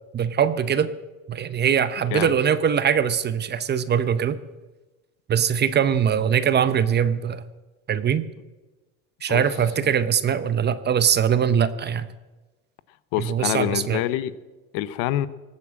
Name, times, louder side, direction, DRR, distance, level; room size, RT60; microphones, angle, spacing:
voice 1, 0.1-0.9 1.3-4.4 5.3-7.4 7.9-8.3 9.2-12.1 13.2-14.0, right 8 dB, 25° right, 14 dB, 0.7 m, -22 dB
voice 2, 13.1-14.3 14.7-15.3, left 14 dB, 65° left, 16 dB, 0.9 m, -26 dB
18.5 x 8.5 x 7.5 m, 1.2 s
supercardioid pair, 120°, 39 cm